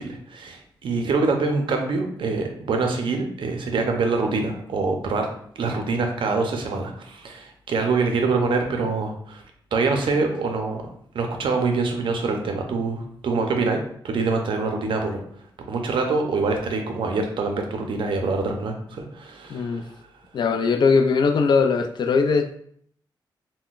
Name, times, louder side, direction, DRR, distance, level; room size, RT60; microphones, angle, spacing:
voice 1, 0.0-5.3 5.6-9.4 9.7-13.8 14.0-15.2 15.7-19.9, right 3 dB, 75° right, 3 dB, 0.5 m, -25 dB
voice 2, 19.5-19.8 20.3-22.5, left 5 dB, 60° left, 6 dB, 0.3 m, -20 dB
3.7 x 2.1 x 2.4 m, 0.65 s
wide cardioid pair, 110°, 8 cm